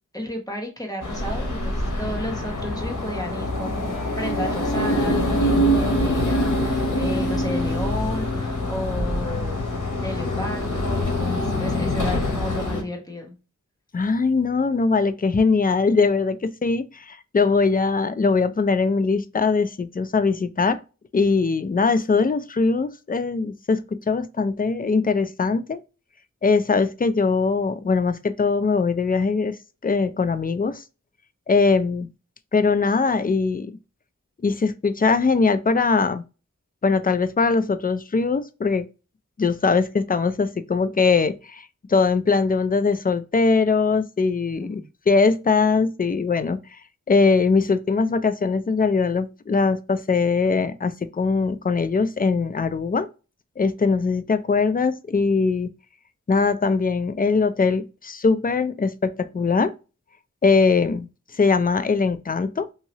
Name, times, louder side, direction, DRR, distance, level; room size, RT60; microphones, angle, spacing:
voice 1, 0.1-9.6 10.0-13.3 44.5-44.9, left 1 dB, 10° left, 1.2 m, -33 dB
sound 1, 1.0-12.8, left 1 dB, 90° left, 0.9 m, -24 dB
voice 2, 13.9-20.8 21.1-25.8 26.4-29.6 29.8-30.8 31.5-32.1 32.5-33.8 34.4-36.2 36.8-38.9 39.4-44.8 45.1-46.6 47.1-53.1 53.6-55.7 56.3-59.7 60.4-61.1 61.4-62.7, left 4 dB, 30° left, 0.4 m, -21 dB
2.9 x 2.7 x 2.8 m
wide cardioid pair, 40°, 30 cm